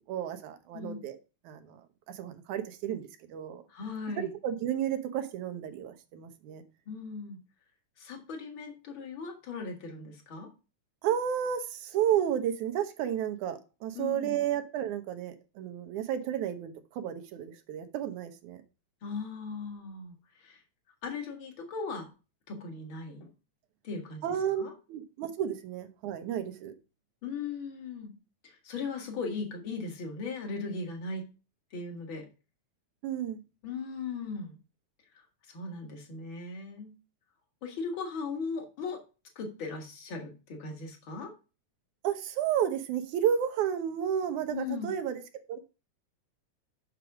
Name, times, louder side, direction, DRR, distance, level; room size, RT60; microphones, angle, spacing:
voice 1, 0.1-1.2 1.5-1.8 2.1-3.6 4.2-6.6 11.0-18.6 24.2-24.6 24.9-26.7 33.0-33.4 42.0-45.2 45.5-45.6, right 9 dB, 90° right, 7 dB, 2.5 m, -32 dB
voice 2, 0.7-1.0 3.7-4.3 6.9-7.4 8.0-10.5 13.9-14.4 19.0-20.1 20.4-20.6 21.0-22.1 22.5-23.3 23.8-24.2 24.6-24.7 27.2-28.1 28.4-31.2 31.7-32.3 33.6-34.6 35.5-36.9 37.6-39.0 39.4-41.3 44.5-44.9, left 4 dB, 45° left, 3 dB, 2.3 m, -38 dB
6.7 x 6.2 x 5.9 m, 0.32 s
omnidirectional pair, 3.3 m